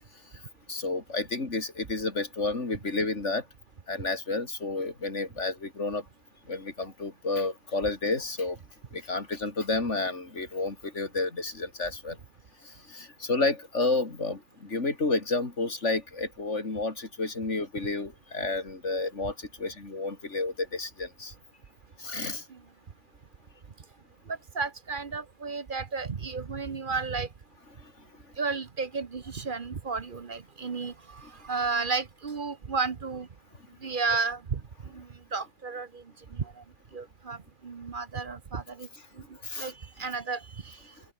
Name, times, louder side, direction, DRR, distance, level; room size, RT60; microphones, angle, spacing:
voice 1, 0.7-3.4 3.9-6.0 6.5-8.6 8.9-12.2 12.7-21.3 22.0-22.4 39.4-39.7, left 3 dB, 75° left, 3.7 m, -31 dB
voice 2, 24.3-27.3 28.4-33.3 33.8-36.0 36.3-36.6 36.9-38.9 39.1-40.9, right 4 dB, 45° right, 1.1 m, -33 dB
omnidirectional pair, 1.2 m